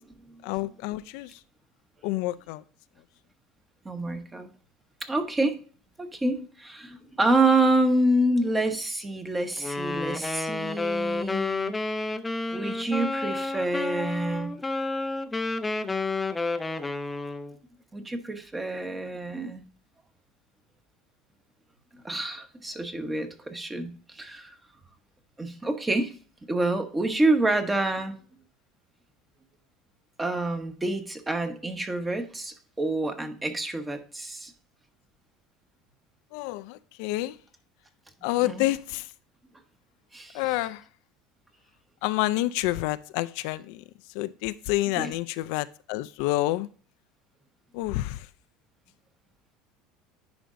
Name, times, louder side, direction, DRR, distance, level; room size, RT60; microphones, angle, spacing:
voice 1, 0.4-1.4 2.0-2.6 36.3-37.4 38.2-39.1 40.3-40.8 42.0-43.8 44.1-46.7 47.7-48.3, left 17 dB, 70° left, 0.4 m, -28 dB
voice 2, 3.8-4.5 5.0-5.6 6.0-11.7 12.5-14.6 17.9-19.6 22.0-24.5 25.4-26.1 26.5-28.1 30.2-34.5 38.4-38.6 40.1-40.4 45.0-45.1, right 2 dB, 10° right, 1.0 m, -27 dB
Wind instrument woodwind instrument, 9.6-17.6, left 3 dB, 10° left, 0.5 m, -30 dB
10.0 x 5.1 x 2.5 m
supercardioid pair, 135°, 0 cm